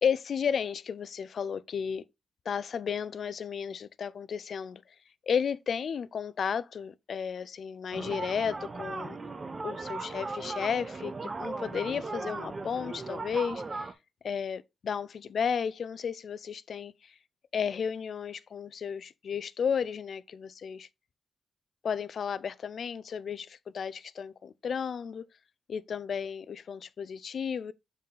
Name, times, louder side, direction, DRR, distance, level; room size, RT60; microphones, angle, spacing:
voice 1, 0.0-2.0 2.5-4.8 5.3-9.2 9.6-13.9 14.2-17.1 17.5-20.9 21.8-25.3 25.7-27.7, left 7 dB, 60° left, 0.4 m, -33 dB
sound 1, 7.9-13.9, right 3 dB, 30° right, 0.6 m, -37 dB
7.3 x 4.0 x 3.8 m
cardioid pair, 105°, 0 cm